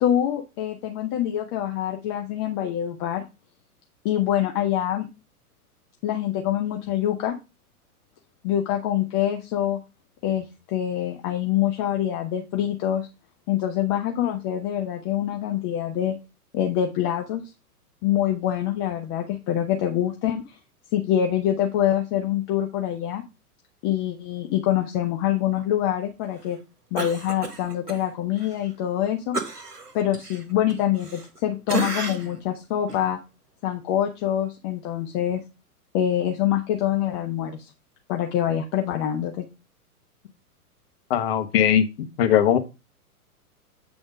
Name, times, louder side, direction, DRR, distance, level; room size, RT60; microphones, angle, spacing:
voice 1, 0.0-3.2 4.0-5.1 6.0-7.4 8.4-9.8 10.2-13.1 13.5-16.1 16.5-17.4 18.0-20.4 20.9-23.2 23.8-26.6 26.9-29.4 29.9-33.2 33.6-35.4 35.9-37.7 38.1-39.5, left 11 dB, 20° left, 3 dB, 0.4 m, -25 dB
Cough, 27.0-28.0 28.4-28.5 29.3-31.4 31.7-32.4 32.9-33.0, right 3 dB, 85° right, 1.5 m, -32 dB
voice 2, 41.1-41.9 42.2-42.6, left 9 dB, 40° left, 9 dB, 0.9 m, -19 dB
8.1 x 3.5 x 5.0 m, 0.28 s
figure-of-eight pair, 110°, 45 cm